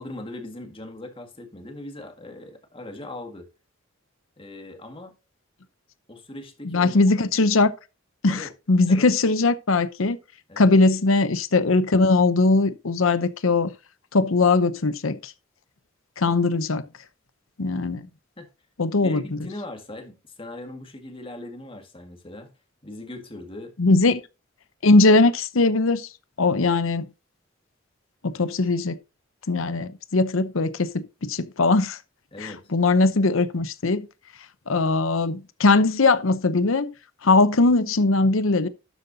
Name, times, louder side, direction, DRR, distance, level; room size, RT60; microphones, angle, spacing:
voice 1, 0.0-3.5 4.4-5.2 6.1-7.0 8.3-8.5 8.9-9.1 10.5-10.7 18.4-18.5 19.0-22.5 22.8-23.7 32.3-32.6, left 1 dB, 25° left, 1.9 m, -39 dB
voice 2, 6.6-7.7 8.2-10.2 10.6-13.7 14.1-15.3 16.2-16.8 17.6-18.1 18.8-19.2 23.8-24.2 24.8-26.1 26.4-27.0 28.2-29.0 29.5-32.0 32.4-34.1 34.7-36.9 37.2-38.7, left 3 dB, 80° left, 0.8 m, -20 dB
12.5 x 7.8 x 2.8 m
head